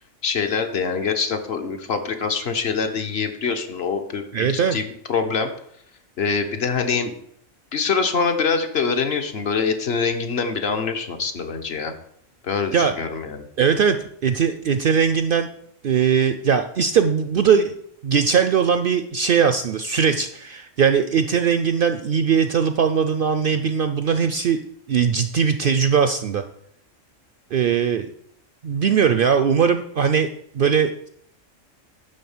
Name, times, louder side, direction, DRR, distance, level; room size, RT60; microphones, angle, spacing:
voice 1, 0.2-5.5 6.2-7.1 7.7-11.9 12.4-13.5, left 5 dB, 55° left, 7 dB, 1.1 m, -24 dB
voice 2, 4.3-4.8 12.7-12.9 13.6-14.0 14.2-15.5 15.8-17.8 18.0-24.6 24.9-26.4 27.5-28.1 28.6-30.3 30.5-31.1, right 7 dB, 60° right, 9 dB, 0.6 m, -20 dB
11.0 x 3.8 x 7.1 m, 0.68 s
omnidirectional pair, 1.3 m